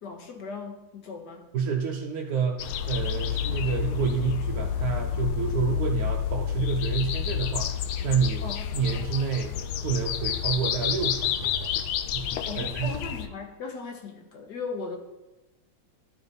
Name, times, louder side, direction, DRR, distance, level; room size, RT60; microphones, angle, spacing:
voice 1, 0.0-1.5 8.4-8.7 12.5-15.0, left 4 dB, 55° left, 4 dB, 1.5 m, -37 dB
voice 2, 1.5-8.4 8.7-11.7 12.1-12.9, right 6 dB, 65° right, 1 dB, 0.9 m, -29 dB
sound 1, 2.6-13.3, left 9 dB, 80° left, 1.4 m, -29 dB
12.0 x 5.1 x 4.1 m, 1.1 s
omnidirectional pair, 2.3 m